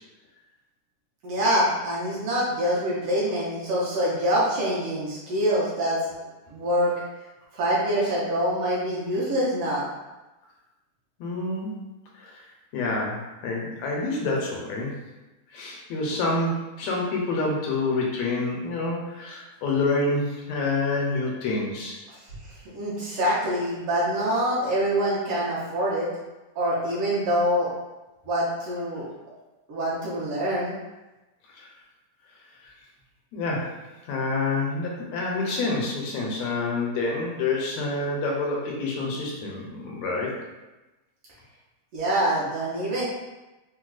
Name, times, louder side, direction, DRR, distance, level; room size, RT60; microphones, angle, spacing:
voice 1, 1.2-6.0 6.5-6.9 7.5-9.8 22.1-22.2 22.7-26.1 26.5-27.7 28.3-29.1 29.7-30.7 41.9-43.1, equal, 70° right, -7 dB, 1.3 m, -25 dB
voice 2, 11.2-11.7 12.2-12.4 12.7-14.9 15.5-22.0 31.6-31.7 32.6-32.7 33.3-33.7 34.1-40.3, left 3 dB, 80° left, -2 dB, 1.8 m, -27 dB
4.6 x 2.1 x 2.3 m, 1.1 s
omnidirectional pair, 3.3 m